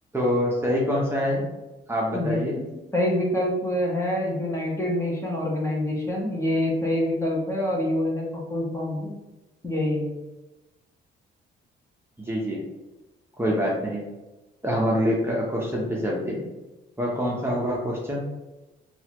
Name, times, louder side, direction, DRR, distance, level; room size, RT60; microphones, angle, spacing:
voice 1, 0.1-1.5 1.9-2.6 12.2-12.6 13.4-14.0 14.6-16.4 17.0-18.2, equal, 10° right, -4 dB, 0.8 m, -25 dB
voice 2, 2.9-9.1 9.6-10.1, left 1 dB, 15° left, -3 dB, 1.0 m, -26 dB
3.9 x 2.4 x 2.9 m, 1.1 s
cardioid pair, 90°, 20 cm